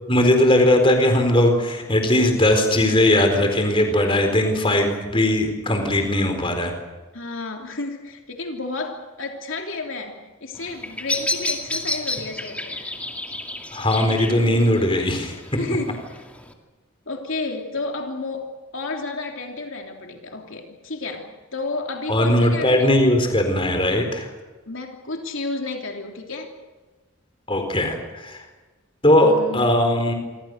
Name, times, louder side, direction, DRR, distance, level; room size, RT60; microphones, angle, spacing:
voice 1, 0.1-6.7 13.7-15.6 22.1-24.3 27.5-28.4 29.0-30.1, left 1 dB, 25° left, 5 dB, 4.3 m, -19 dB
voice 2, 7.1-12.8 15.6-16.2 17.1-18.5 18.7-22.9 24.7-26.5 29.2-29.8, left 3 dB, 65° left, 2 dB, 3.2 m, -31 dB
Bird vocalization bird call bird song, 10.5-16.5, left 2 dB, 5° left, 2.3 m, -31 dB
28.0 x 25.0 x 6.6 m, 1.2 s
head